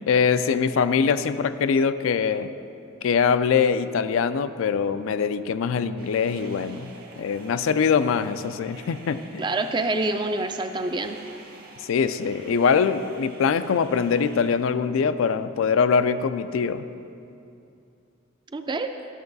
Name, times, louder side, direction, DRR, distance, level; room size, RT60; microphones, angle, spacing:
voice 1, 0.0-2.5 3.0-6.9 7.2-9.4 11.9-16.8, left 6 dB, 75° left, 12 dB, 0.3 m, -23 dB
sound 1, 6.0-14.6, right 2 dB, 45° right, 1.0 m, -48 dB
voice 2, 9.4-11.2 18.5-18.9, right 2 dB, 20° right, 7 dB, 0.4 m, -26 dB
12.0 x 6.7 x 4.0 m, 2.6 s
head